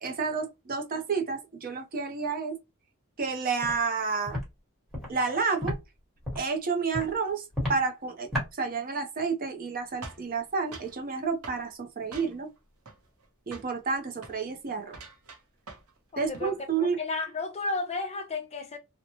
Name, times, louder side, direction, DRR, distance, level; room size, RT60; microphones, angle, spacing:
voice 1, 0.0-2.6 3.2-4.4 5.1-5.8 6.4-7.4 7.7-8.3 8.6-12.5 13.5-14.9 16.2-17.0, right 5 dB, 40° right, 0.6 m, -30 dB
Walk footsteps, 3.6-3.8 4.3-4.4 4.9-5.1 5.6-5.8 6.2-6.5 6.9-7.1 7.5-7.8 8.3-8.5, left 1 dB, ahead, 1.2 m, -31 dB
sound 1, 10.0-11.0 11.4-11.7 12.1-12.6 12.9-13.3 13.5-13.8 14.2-14.4 14.9-16.0 16.2-16.6, right 3 dB, 75° right, 0.8 m, -45 dB
voice 2, 16.1-16.5 16.8-18.8, left 3 dB, 30° left, 0.6 m, -33 dB
2.9 x 2.1 x 2.8 m
head